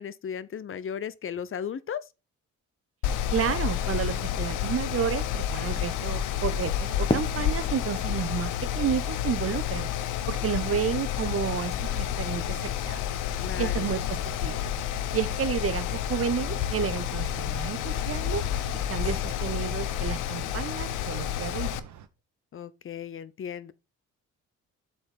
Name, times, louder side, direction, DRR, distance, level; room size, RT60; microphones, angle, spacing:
voice 1, 0.0-2.1 13.4-13.9 22.5-23.7, left 8 dB, 45° left, 0.8 m, -36 dB
Mechanical fan, 3.0-21.8, left 10 dB, 90° left, 0.8 m, -30 dB
voice 2, 3.3-9.9 10.3-13.0 13.6-14.0 14.4-14.7 15.1-18.4 18.7-21.7, right 8 dB, 50° right, 1.1 m, -31 dB
Fireworks, 7.1-10.1, left 2 dB, 15° left, 1.3 m, -34 dB
sound 1, 15.8-22.1, right 9 dB, 70° right, 1.2 m, -48 dB
7.8 x 4.5 x 5.7 m
cardioid pair, 90°, 30 cm